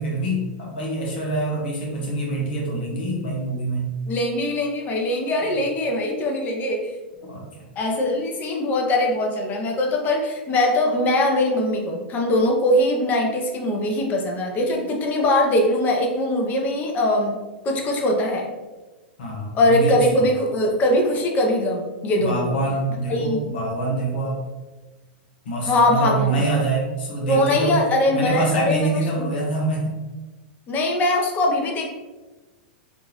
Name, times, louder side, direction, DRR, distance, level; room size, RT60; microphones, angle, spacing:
voice 1, 0.0-3.9 7.3-7.5 19.2-20.3 22.2-24.4 25.4-27.8 28.1-30.0, right 2 dB, 75° left, -3 dB, 1.3 m, -25 dB
voice 2, 4.1-6.9 7.8-17.4 17.6-18.5 19.5-22.5 23.1-23.5 25.7-26.4 27.3-28.9 29.2-29.3 30.7-31.9, left 1 dB, 30° left, 1 dB, 0.8 m, -21 dB
3.5 x 2.6 x 3.0 m, 1.2 s
hypercardioid pair, 110°, 6 cm